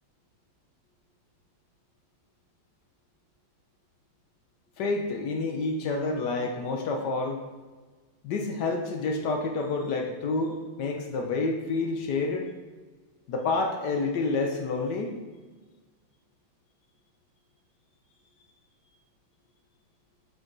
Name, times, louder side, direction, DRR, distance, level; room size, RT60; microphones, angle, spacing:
voice 1, 4.8-7.4 8.2-12.5 13.3-15.1, left 3 dB, 70° left, 3 dB, 1.1 m, -28 dB
8.0 x 3.8 x 3.8 m, 1.3 s
omnidirectional pair, 2.4 m